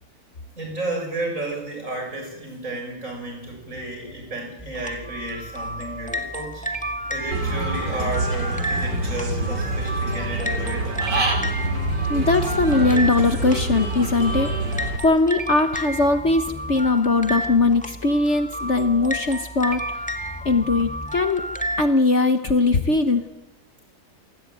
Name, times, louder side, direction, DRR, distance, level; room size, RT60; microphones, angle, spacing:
voice 1, 0.5-6.8 7.1-11.1, right 2 dB, 50° right, 2 dB, 8.1 m, -32 dB
sound 1, 4.6-21.9, equal, 5° left, 1.8 m, -31 dB
Human voice / Bird, 7.3-15.0, right 2 dB, 85° right, 3.9 m, -26 dB
voice 2, 12.1-20.0 20.4-21.4 21.8-23.2, left 3 dB, 45° left, 8 dB, 1.5 m, -20 dB
27.5 x 19.5 x 9.3 m, 0.97 s
omnidirectional pair, 1.8 m